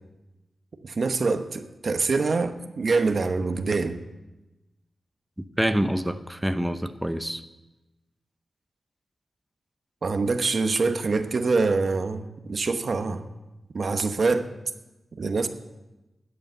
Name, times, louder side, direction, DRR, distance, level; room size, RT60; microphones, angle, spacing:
voice 1, 0.8-4.0 10.0-13.3 13.7-14.5 15.2-15.5, right 4 dB, 60° right, 8 dB, 1.0 m, -25 dB
voice 2, 5.6-7.4, equal, 5° right, 9 dB, 0.8 m, -26 dB
12.5 x 8.6 x 8.1 m, 1.0 s
cardioid pair, 55°, 0 cm